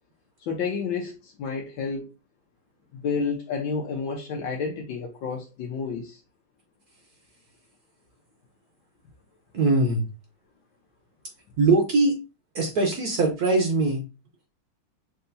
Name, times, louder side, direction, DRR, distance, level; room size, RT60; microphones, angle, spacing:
voice 1, 0.4-2.1 2.9-6.2, left 5 dB, 90° left, 1.5 m, -30 dB
voice 2, 9.5-10.1 11.6-12.2 12.5-14.0, right 3 dB, 60° right, 1.3 m, -21 dB
6.7 x 2.7 x 2.6 m
omnidirectional pair, 2.0 m